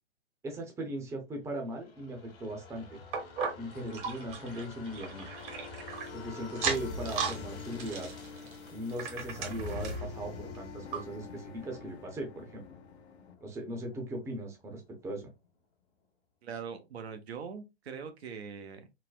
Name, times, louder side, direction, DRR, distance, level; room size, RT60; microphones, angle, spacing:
voice 1, 0.4-3.0 3.6-5.3 6.1-8.1 8.7-12.6 13.4-15.3, right 1 dB, 10° right, 0.7 m, -39 dB
sound 1, 1.6-15.1 15.4-15.5, left 4 dB, 55° left, 1.4 m, -46 dB
sound 2, 3.1-6.1 6.5-7.4 7.7-10.1 10.5-10.6 10.9-11.0 11.7-11.8, right 5 dB, 50° right, 1.1 m, -36 dB
sound 3, 5.3-13.3, left 5 dB, 75° left, 0.6 m, -49 dB
voice 2, 16.4-19.0, right 6 dB, 70° right, 0.7 m, -42 dB
4.0 x 2.1 x 2.4 m
hypercardioid pair, 125°, 33 cm